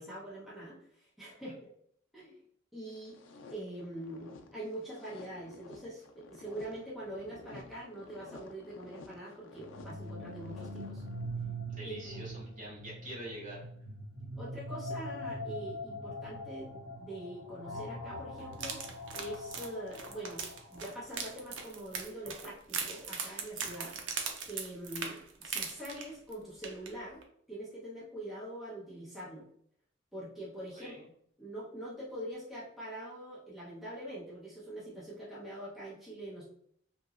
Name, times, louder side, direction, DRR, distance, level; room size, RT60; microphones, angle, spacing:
voice 1, 0.0-1.6 2.1-2.4 2.7-3.2 3.5-11.0 11.8-12.3 14.4-18.8 19.1-20.4 20.7-23.9 24.5-27.2 27.5-29.5 30.1-31.0 31.4-36.4, right 1 dB, ahead, -9 dB, 0.8 m, -44 dB
sound 1, 2.9-11.5, left 3 dB, 85° left, 0.4 m, -53 dB
sound 2, 9.6-21.4, equal, 70° left, 0.8 m, -43 dB
voice 2, 11.7-13.6 30.7-31.0, right 1 dB, 40° right, -6 dB, 1.2 m, -45 dB
sound 3, 18.5-26.3 26.6-26.9 27.2-27.3, right 6 dB, 75° right, 0.5 m, -39 dB
2.9 x 2.7 x 2.4 m, 0.65 s
head